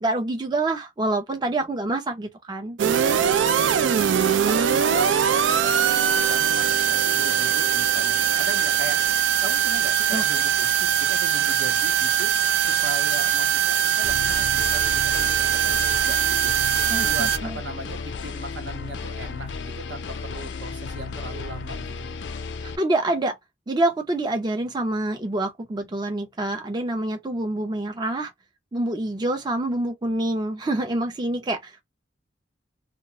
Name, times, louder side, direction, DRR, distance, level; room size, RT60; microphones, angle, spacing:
voice 1, 0.0-2.8 10.1-10.2 16.9-17.6 22.6-23.3 23.7-28.3 28.7-31.8, right 2 dB, 25° right, 0.5 m, -26 dB
sound 1, 2.8-17.4, right 8 dB, 85° right, 0.4 m, -21 dB
voice 2, 3.5-4.2 4.4-16.7 17.0-21.9, right 2 dB, 70° right, 0.8 m, -38 dB
sound 2, 14.0-22.8, left 4 dB, 75° left, 0.5 m, -34 dB
2.3 x 2.1 x 2.8 m
head